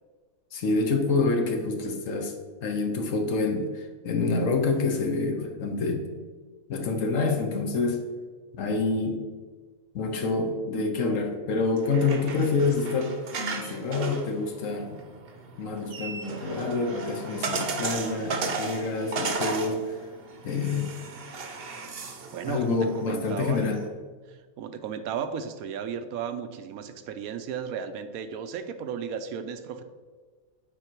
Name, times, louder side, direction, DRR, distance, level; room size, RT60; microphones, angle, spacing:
voice 1, 0.5-2.3 2.6-6.1 6.7-8.0 8.5-9.2 9.9-13.1 13.5-15.0 15.6-19.8 20.4-20.9 22.5-23.8, left 3 dB, 65° left, 4 dB, 1.2 m, -27 dB
sound 1, 11.6-23.9, right 3 dB, 50° right, 0.9 m, -35 dB
voice 2, 22.3-23.6 24.3-29.8, right 7 dB, 80° right, 9 dB, 1.0 m, -34 dB
8.7 x 4.5 x 4.5 m, 1.5 s
omnidirectional pair, 1.5 m